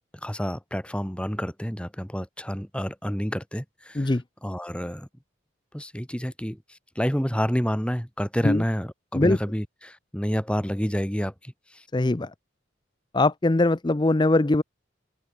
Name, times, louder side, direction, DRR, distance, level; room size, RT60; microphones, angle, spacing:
voice 1, 0.2-4.1 4.4-5.1 5.7-11.8, equal, 5° left, 3.3 m, -29 dB
voice 2, 11.9-12.3 13.1-14.6, left 2 dB, 25° left, 0.6 m, -21 dB
open air
head